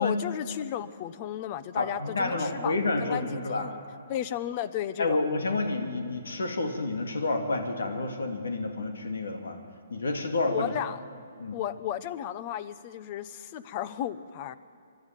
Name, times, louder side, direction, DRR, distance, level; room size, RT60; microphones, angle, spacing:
voice 1, 0.0-3.8 4.1-5.2 10.5-11.0 11.5-14.6, left 11 dB, 35° left, 15 dB, 0.9 m, -34 dB
voice 2, 1.7-3.7 5.0-9.6 9.9-10.7 11.4-11.6, left 2 dB, 85° left, 5 dB, 2.7 m, -29 dB
24.0 x 12.0 x 9.1 m, 2.4 s
hypercardioid pair, 150°, 0 cm